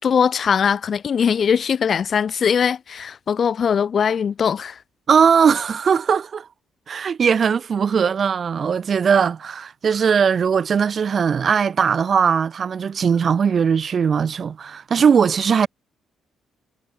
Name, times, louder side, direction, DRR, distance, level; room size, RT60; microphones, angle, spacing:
voice 1, 0.0-4.8, left 7 dB, 50° left, 4.2 m, -20 dB
voice 2, 5.1-6.5 6.9-15.7, right 6 dB, 45° right, 3.3 m, -19 dB
cardioid pair, 90°, 0 cm